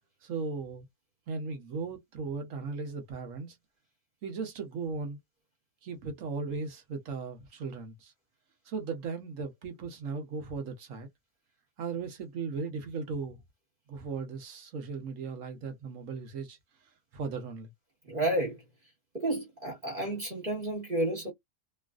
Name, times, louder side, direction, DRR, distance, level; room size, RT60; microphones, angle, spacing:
voice 1, 0.2-0.9 1.3-3.6 4.2-5.2 5.8-8.1 8.6-11.1 11.8-13.4 13.9-17.7, right 4 dB, 75° right, 1.1 m, -37 dB
voice 2, 18.0-18.6 19.1-21.3, right 1 dB, 40° right, 1.3 m, -31 dB
3.0 x 2.4 x 2.3 m
omnidirectional pair, 1.4 m